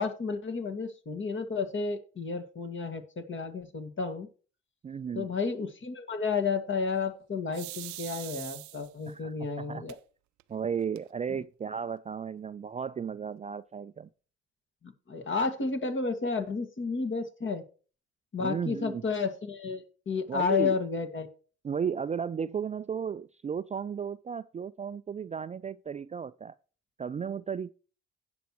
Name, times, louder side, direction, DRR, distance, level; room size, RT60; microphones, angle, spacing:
voice 1, 0.0-4.3 5.1-10.0 11.3-11.4 14.8-17.6 18.3-21.3, left 4 dB, 40° left, 2.0 m, -32 dB
voice 2, 4.8-5.3 9.1-9.8 10.5-14.1 18.4-19.0 20.3-20.8 21.6-26.5 27.0-27.7, right 7 dB, 25° right, 0.4 m, -34 dB
sound 1, 7.5-9.1 9.9-10.0 10.4-10.5 10.8-11.4, right 19 dB, 65° right, 0.6 m, -42 dB
17.0 x 6.0 x 3.1 m
hypercardioid pair, 45°, 30 cm